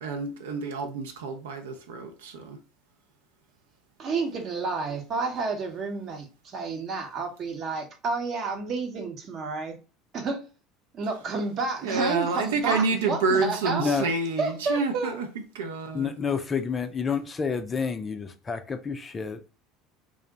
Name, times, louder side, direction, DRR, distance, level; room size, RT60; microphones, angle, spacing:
voice 1, 0.0-2.6 11.8-15.3 15.5-16.1, right 4 dB, 70° right, 0.4 m, -28 dB
voice 2, 4.0-9.8 10.1-10.5 10.9-13.9 14.4-15.1, right 4 dB, 45° right, 0.8 m, -30 dB
voice 3, 15.9-19.5, left 5 dB, 25° left, 0.4 m, -29 dB
2.5 x 2.0 x 3.9 m
figure-of-eight pair, 70°, 0 cm